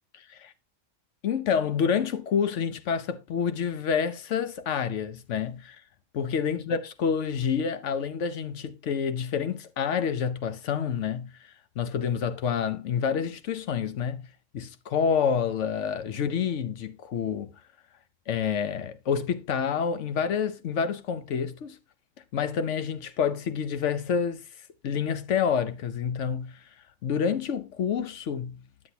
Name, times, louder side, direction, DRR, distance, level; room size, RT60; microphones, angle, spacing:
voice 1, 1.2-5.8 6.1-11.3 11.8-14.2 14.5-17.5 18.3-21.8 22.3-24.4 24.8-26.5 27.0-28.6, left 7 dB, 70° left, 1.1 m, -28 dB
9.8 x 7.5 x 2.7 m
omnidirectional pair, 1.3 m